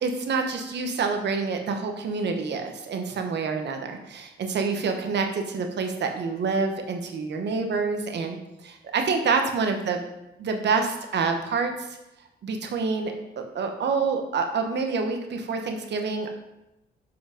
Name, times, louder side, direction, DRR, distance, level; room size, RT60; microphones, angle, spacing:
voice 1, 0.0-10.0 10.4-11.7 12.4-13.1 13.5-16.4, right 4 dB, 60° right, 4 dB, 1.1 m, -27 dB
7.1 x 5.0 x 5.2 m, 0.91 s
cardioid pair, 90°, 20 cm